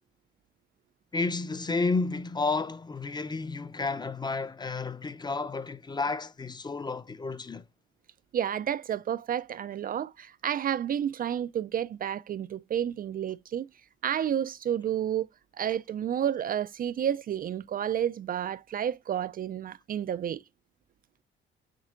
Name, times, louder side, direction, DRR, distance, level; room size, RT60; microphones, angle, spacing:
voice 1, 1.1-7.6, left 3 dB, 20° left, 0.6 m, -31 dB
voice 2, 8.3-13.7 14.0-15.3 15.5-20.4, right 9 dB, 45° right, 0.4 m, -30 dB
7.4 x 5.8 x 2.5 m
cardioid pair, 90°, 20 cm